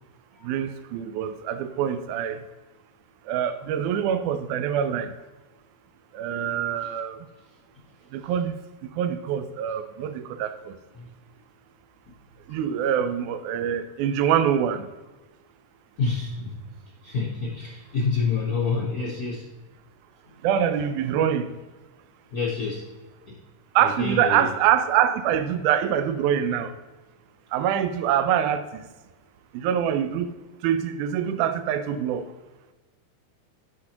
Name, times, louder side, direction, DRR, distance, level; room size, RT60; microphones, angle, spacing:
voice 1, 0.4-2.4 3.3-5.1 6.1-7.2 8.1-8.5 9.0-10.7 12.5-14.8 20.4-21.5 23.8-26.7 27.5-28.6 29.6-30.3 30.6-32.3, right 9 dB, 80° right, 1.9 m, -24 dB
voice 2, 16.0-16.7 17.0-19.5 22.3-22.9 23.3-23.4 23.8-24.5, left 4 dB, 65° left, 0.8 m, -28 dB
13.5 x 5.1 x 2.9 m
omnidirectional pair, 3.6 m